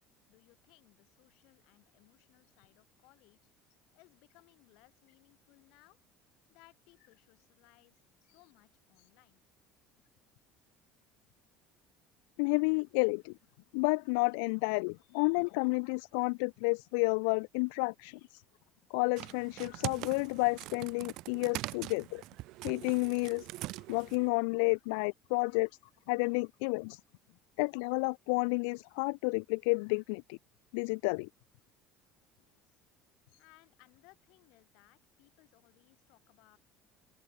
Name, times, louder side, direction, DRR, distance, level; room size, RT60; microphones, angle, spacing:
voice 1, 0.3-6.0 6.5-9.4 32.4-32.8 33.4-36.6, left 25 dB, 70° left, 7.3 m, -65 dB
voice 2, 12.4-13.3 13.7-18.4 18.9-22.2 22.6-23.5 23.9-25.7 26.1-27.0 27.6-30.4 30.7-31.3, left 34 dB, 90° left, 0.3 m, -31 dB
sound 1, 19.2-24.3, right 19 dB, 65° right, 0.6 m, -42 dB
open air
cardioid pair, 140°, 0 cm